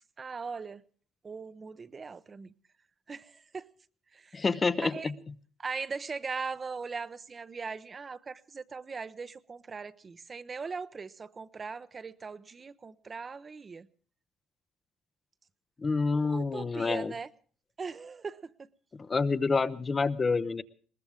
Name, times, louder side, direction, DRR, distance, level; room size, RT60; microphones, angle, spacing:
voice 1, 0.2-0.8 1.2-2.5 3.1-3.7 4.1-4.4 4.8-5.1 5.6-13.9 16.1-17.3 17.8-18.7, right 5 dB, 25° right, 0.7 m, -40 dB
voice 2, 4.3-5.1 15.8-17.1 18.9-20.6, left 4 dB, 20° left, 0.7 m, -28 dB
21.5 x 19.5 x 3.5 m
cardioid pair, 140°, 0 cm